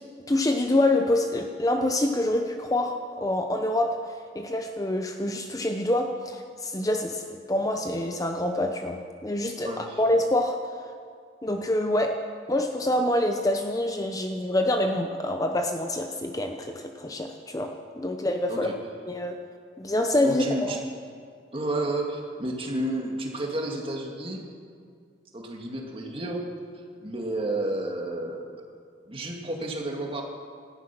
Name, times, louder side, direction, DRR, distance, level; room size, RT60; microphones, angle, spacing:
voice 1, 0.3-4.0 4.3-10.6 11.4-12.2 12.5-18.7 19.1-19.4 19.8-20.8, left 1 dB, 20° left, 5 dB, 0.8 m, -26 dB
voice 2, 9.6-10.0 18.5-18.7 20.2-20.8 21.5-24.4 25.3-26.4 27.0-28.5 29.1-30.2, right 1 dB, 30° right, 1 dB, 2.1 m, -31 dB
17.5 x 13.5 x 6.0 m, 2.2 s
head